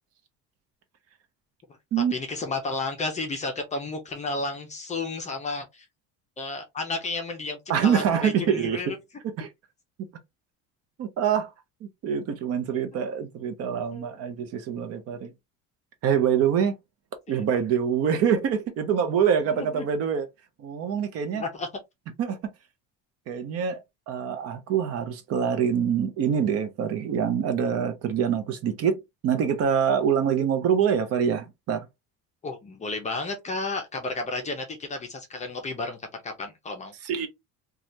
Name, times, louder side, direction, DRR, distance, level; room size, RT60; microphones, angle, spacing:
voice 1, 2.1-5.9 6.4-8.9 12.9-13.1 13.9-14.2 17.3-17.5 19.5-19.9 21.3-21.7 32.4-36.9, left 3 dB, 20° left, 0.5 m, -32 dB
voice 2, 7.7-8.8 9.4-9.5 11.0-11.5 12.0-15.3 16.0-16.7 17.3-20.3 20.6-21.4 22.2-22.4 23.3-23.8 24.1-31.9 37.0-37.3, right 8 dB, 50° right, 0.7 m, -25 dB
3.2 x 2.3 x 2.6 m
cardioid pair, 150°, 31 cm